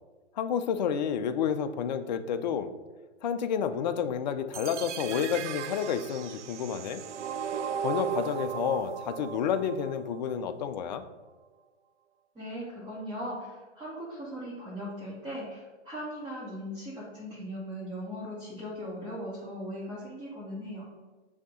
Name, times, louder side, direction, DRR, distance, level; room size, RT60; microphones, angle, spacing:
voice 1, 0.4-2.7 3.2-7.0 7.8-11.0, left 7 dB, 40° left, 10 dB, 0.4 m, -30 dB
sound 1, 4.5-10.5, right 8 dB, 80° right, 0.5 m, -36 dB
voice 2, 12.3-20.9, equal, 10° right, -10 dB, 1.7 m, -39 dB
6.3 x 2.8 x 5.3 m, 1.2 s
hypercardioid pair, 140°, 35 cm